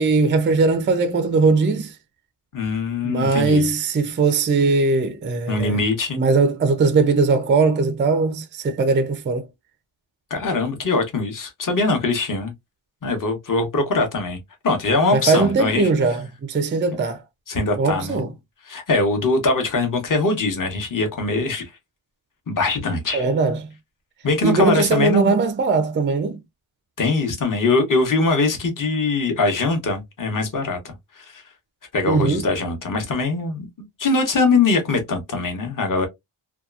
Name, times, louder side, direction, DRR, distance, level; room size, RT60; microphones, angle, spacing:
voice 1, 0.0-1.9 3.0-5.8 6.2-9.5 15.1-17.2 17.7-18.3 23.1-23.7 24.4-26.4 32.1-32.5, right 4 dB, 25° right, 0.4 m, -20 dB
voice 2, 2.5-3.7 5.5-6.2 10.3-12.5 13.0-14.4 14.6-15.9 17.5-18.2 18.7-21.7 22.5-23.2 24.2-25.4 27.0-31.4 31.9-33.7 34.0-36.1, left 3 dB, 40° left, 0.9 m, -22 dB
2.8 x 2.3 x 2.3 m
wide cardioid pair, 125°, 49 cm